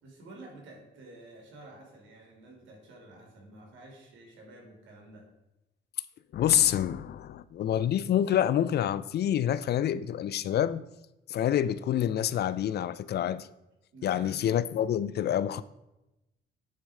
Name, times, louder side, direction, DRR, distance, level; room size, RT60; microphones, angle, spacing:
voice 1, 0.0-5.3 13.9-14.5, right 2 dB, 75° right, 2.8 m, -50 dB
voice 2, 6.3-10.8 11.3-13.5 14.0-15.6, left 10 dB, 55° left, 0.4 m, -27 dB
9.5 x 4.1 x 4.8 m
cardioid pair, 90°, 20 cm